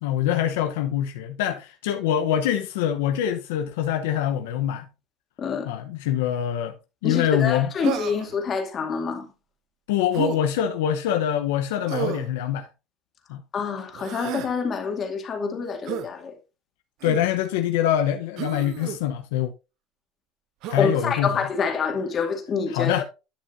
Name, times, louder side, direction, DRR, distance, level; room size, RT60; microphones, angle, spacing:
voice 1, 0.0-4.9 5.6-6.7 7.0-7.7 9.9-12.7 13.3-13.4 17.0-19.5 20.7-21.3 22.7-23.0, left 10 dB, 85° left, 0.8 m, -24 dB
voice 2, 5.4-5.7 7.0-9.3 13.5-16.3 20.8-23.0, left 5 dB, 40° left, 2.2 m, -27 dB
Human voice, 7.8-8.4 10.1-10.4 11.9-12.3 13.9-14.5 15.9-16.1 17.0-17.3 18.4-19.0 20.6-20.9, right 11 dB, 65° right, 0.9 m, -31 dB
11.5 x 6.3 x 2.6 m
supercardioid pair, 100°, 0 cm